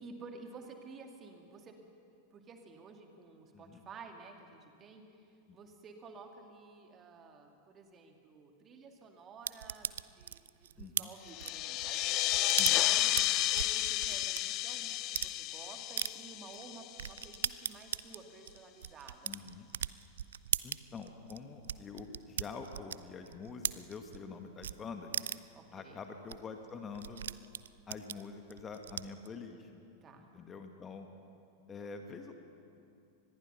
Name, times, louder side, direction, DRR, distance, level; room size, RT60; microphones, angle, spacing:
voice 1, 0.0-1.8 2.3-5.2 5.5-12.6 12.9-19.7 25.5-26.0 30.0-30.3, right 4 dB, 25° right, 4 dB, 2.4 m, -52 dB
sound 1, 9.5-14.4 14.9-15.3 16.0-16.1 16.5-16.6 17.0-24.3 24.6-24.7 25.1-25.6 26.0-26.1 26.3-26.4 26.6-29.3, right 10 dB, 65° right, 0.4 m, -38 dB
voice 2, 10.8-11.1 12.6-12.8 19.2-19.7 20.6-25.2 25.7-27.3 27.9-29.8 30.2-31.1 31.7-32.3, left 5 dB, 20° left, 5 dB, 1.8 m, -46 dB
sound 2, 11.3-17.4, left 15 dB, 40° left, 0.7 m, -32 dB
24.5 x 20.5 x 5.8 m, 2.5 s
figure-of-eight pair, 90°, 0 cm